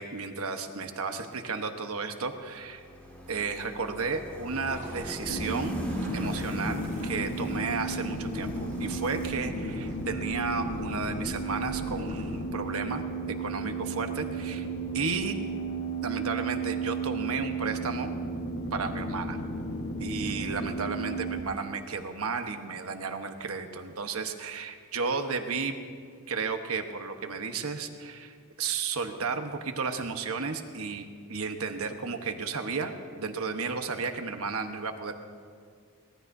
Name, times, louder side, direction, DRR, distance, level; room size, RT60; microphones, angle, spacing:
voice 1, 0.0-2.8 3.3-5.8 6.1-14.7 14.9-15.4 16.0-18.1 18.7-19.4 20.0-25.8 26.3-35.1, right 4 dB, 70° right, 6 dB, 1.1 m, -33 dB
sound 1, 2.5-15.7, equal, 10° left, 2.0 m, -41 dB
sound 2, 4.4-12.4, right 1 dB, 30° right, 1.8 m, -46 dB
sound 3, 5.3-21.4, right 3 dB, 50° left, 1.2 m, -34 dB
24.0 x 18.5 x 2.7 m, 2.1 s
head